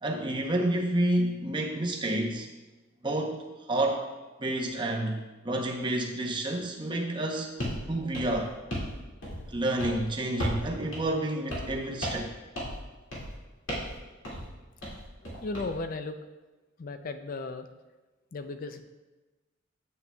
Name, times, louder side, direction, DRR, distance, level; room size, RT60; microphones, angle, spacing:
voice 1, 0.0-2.5 3.0-4.0 4.4-7.6 7.9-8.5 9.5-12.3, right 1 dB, 25° right, 0 dB, 0.8 m, -29 dB
sound 1, 7.6-7.8 8.1-8.9 9.2-9.5 9.8-10.0 10.4-10.7 10.9-11.0 11.5-11.7 12.0-12.3 12.6-12.8 13.1-13.3 13.7-13.9 14.2-14.4 14.8-15.7, equal, 70° left, 2.2 m, -34 dB
voice 2, 15.2-16.2 16.8-17.7 18.3-18.8, left 3 dB, 45° left, 8 dB, 0.4 m, -36 dB
8.2 x 7.5 x 2.3 m, 1.2 s
head